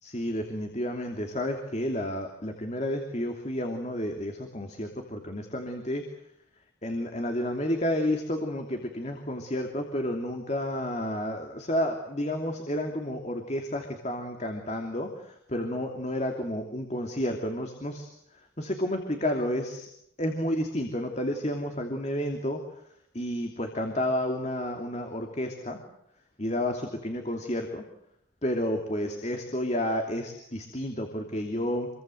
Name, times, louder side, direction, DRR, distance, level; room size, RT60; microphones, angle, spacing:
voice 1, 0.0-6.0 6.8-19.9 20.2-22.6 23.1-25.8 26.4-27.8 28.4-31.9, left 1 dB, 35° left, 4 dB, 2.9 m, -31 dB
27.5 x 23.0 x 7.9 m, 0.74 s
head